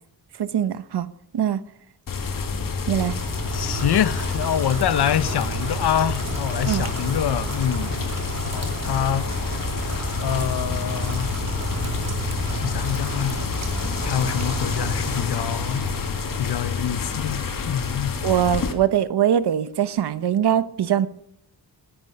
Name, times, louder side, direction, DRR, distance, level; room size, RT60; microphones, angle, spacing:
voice 1, 0.4-1.1 1.3-1.6 2.9-3.1 6.7-6.8 18.2-21.1, right 9 dB, 75° right, 1.0 m, -22 dB
sound 1, 2.1-18.7, left 5 dB, 55° left, 2.2 m, -29 dB
Rain, 2.8-16.6, right 2 dB, 40° right, 2.8 m, -31 dB
voice 2, 3.5-8.1 8.4-9.3 10.2-11.3 12.6-13.4 14.0-15.9 16.4-18.2, left 10 dB, 70° left, 0.8 m, -25 dB
20.5 x 11.0 x 5.4 m
wide cardioid pair, 145°, 40 cm